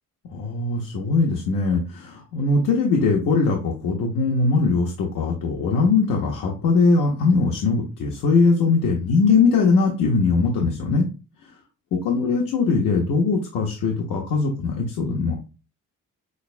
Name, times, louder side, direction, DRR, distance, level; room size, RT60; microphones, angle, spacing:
voice 1, 0.3-11.1 11.9-15.3, left 4 dB, 90° left, 0 dB, 0.9 m, -21 dB
6.4 x 2.2 x 2.5 m, 0.32 s
cardioid pair, 170°, 32 cm